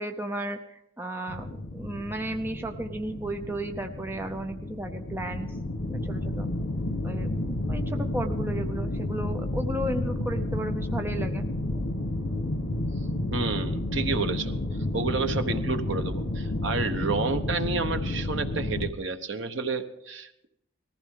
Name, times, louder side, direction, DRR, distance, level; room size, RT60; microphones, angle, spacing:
voice 1, 0.0-5.5 5.9-6.5 7.0-11.5 11.8-11.9, right 1 dB, 10° right, 5 dB, 0.6 m, -34 dB
sound 1, 1.3-18.9, left 1 dB, 85° left, 1.1 m, -31 dB
voice 2, 13.3-14.5 14.9-20.5, right 4 dB, 60° right, 8 dB, 1.0 m, -30 dB
19.5 x 14.5 x 3.7 m, 0.81 s
head